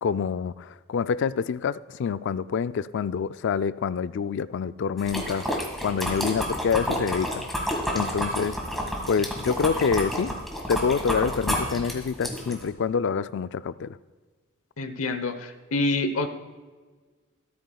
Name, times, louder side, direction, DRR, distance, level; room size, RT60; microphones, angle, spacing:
voice 1, 0.0-8.6 9.1-10.3 10.7-14.0, left 6 dB, 60° left, 0.3 m, -27 dB
sound 1, 5.0-12.7, equal, ahead, 1.9 m, -30 dB
voice 2, 14.8-16.3, left 2 dB, 80° left, 0.9 m, -27 dB
14.0 x 13.0 x 2.3 m
head